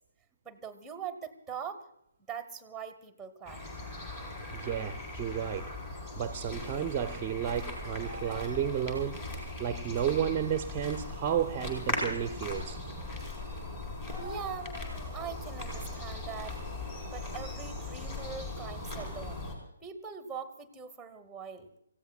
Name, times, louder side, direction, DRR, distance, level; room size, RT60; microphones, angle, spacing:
voice 1, 0.4-1.9 2.3-3.7 14.2-14.7 15.1-16.6 17.1-19.4 19.8-21.7, right 7 dB, 5° right, 1.1 m, -42 dB
sound 1, 3.5-19.6, left 2 dB, 25° left, 4.1 m, -39 dB
voice 2, 4.5-5.7 6.2-9.3 9.6-12.8, right 9 dB, 20° right, 0.7 m, -32 dB
29.5 x 16.0 x 2.3 m
figure-of-eight pair, 140°, 0 cm